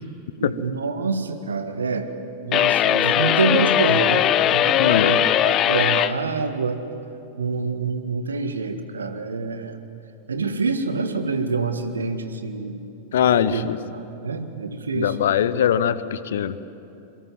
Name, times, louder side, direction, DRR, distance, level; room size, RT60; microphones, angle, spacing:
voice 1, 0.4-2.1 2.4-6.8 7.4-9.8 10.3-12.8 13.4-13.6 13.9-15.2, right 4 dB, 75° right, 8 dB, 1.8 m, -26 dB
sound 1, 2.5-6.1, left 11 dB, 35° left, 0.8 m, -19 dB
voice 2, 4.8-5.1 13.1-13.8 14.9-16.6, left 9 dB, 60° left, 15 dB, 0.9 m, -21 dB
27.5 x 23.5 x 7.5 m, 2.8 s
figure-of-eight pair, 90°, 0 cm